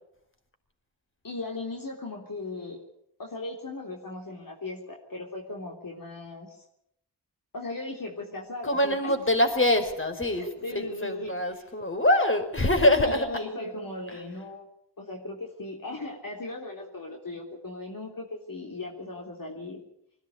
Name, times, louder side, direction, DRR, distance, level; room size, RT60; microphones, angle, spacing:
voice 1, 1.2-2.8 3.2-6.6 7.5-9.2 10.4-11.7 13.0-14.7 15.0-19.8, left 2 dB, 55° left, 1 dB, 3.6 m, -37 dB
voice 2, 8.6-13.3 14.1-14.2, left 1 dB, 30° left, 6 dB, 4.9 m, -24 dB
20.5 x 16.0 x 9.6 m, 0.76 s
cardioid pair, 40°, 40 cm